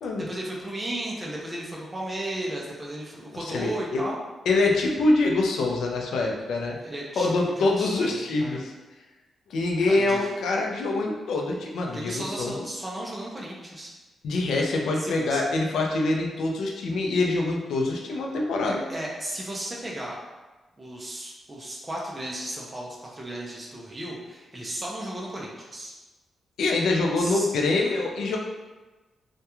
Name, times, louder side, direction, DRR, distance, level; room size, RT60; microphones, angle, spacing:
voice 1, 0.3-4.2 6.8-8.7 9.9-10.3 11.9-13.9 15.0-15.4 18.7-20.2 20.8-25.9 27.2-27.5, right 1 dB, 15° right, -3 dB, 0.3 m, -35 dB
voice 2, 3.4-4.0 4.5-6.8 7.2-8.7 9.5-12.7 14.2-18.8 26.6-28.4, left 2 dB, 85° left, 0 dB, 0.3 m, -25 dB
2.3 x 2.1 x 2.9 m, 1.2 s
wide cardioid pair, 175°, 0 cm